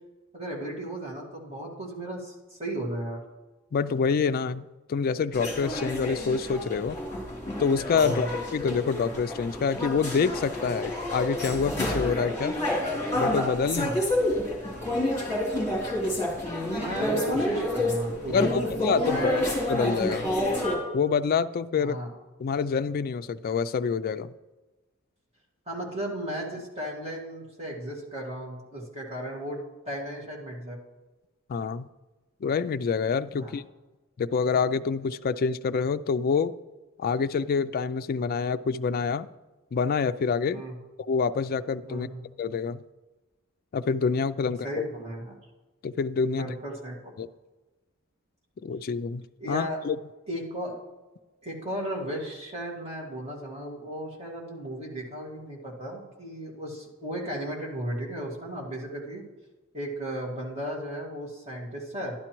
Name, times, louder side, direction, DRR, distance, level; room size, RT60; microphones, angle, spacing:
voice 1, 0.3-3.2 8.0-8.3 13.7-14.0 16.7-18.7 19.1-19.4 21.7-22.1 25.7-29.6 29.9-30.8 33.4-33.6 40.5-40.8 41.9-42.2 44.4-45.4 46.3-47.1 49.4-49.8 50.3-50.8 51.4-59.2 59.7-62.1, right 1 dB, 30° right, -2 dB, 2.0 m, -35 dB
voice 2, 3.7-7.0 7.6-12.6 13.2-13.9 18.3-19.3 19.7-20.3 20.9-22.0 22.4-24.3 31.5-31.9 32.4-33.6 34.2-36.5 37.0-39.3 39.7-40.6 41.1-42.1 42.4-42.8 43.7-44.9 45.8-46.5 47.2-47.3 48.6-50.0, left 5 dB, 45° left, 12 dB, 0.3 m, -27 dB
sound 1, 5.3-20.8, left 1 dB, 15° left, 3.1 m, -29 dB
12.0 x 11.0 x 3.0 m, 1.1 s
head